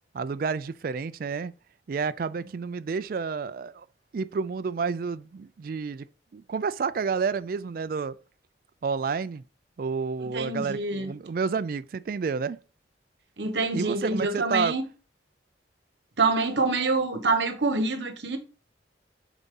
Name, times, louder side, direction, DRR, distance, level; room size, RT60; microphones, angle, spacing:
voice 1, 0.1-1.5 1.9-3.9 4.1-6.1 6.3-8.2 8.8-9.4 9.8-12.6 13.7-14.7, right 5 dB, 50° right, 0.3 m, -30 dB
voice 2, 10.3-11.1 13.4-14.8 16.2-18.4, right 3 dB, 70° right, 1.1 m, -26 dB
7.2 x 4.1 x 3.8 m
head